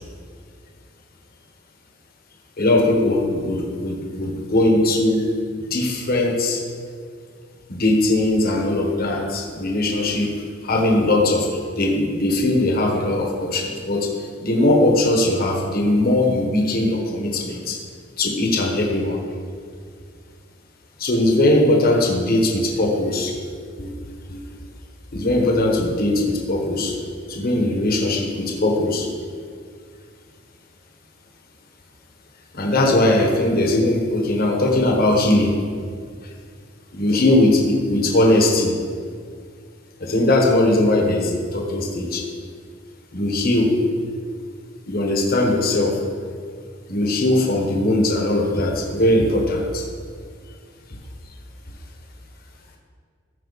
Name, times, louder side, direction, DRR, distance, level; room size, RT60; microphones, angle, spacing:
voice 1, 2.6-5.3 5.7-6.6 7.7-11.5 11.8-17.8 18.2-19.2 21.0-23.4 23.8-23.9 24.3-24.4 25.1-27.0 27.3-29.1 32.5-35.6 36.9-38.8 40.0-42.2 43.1-43.8 44.9-46.0 46.9-49.8, left 1 dB, 50° left, 0 dB, 1.4 m, -20 dB
15.0 x 5.5 x 4.1 m, 2.1 s
head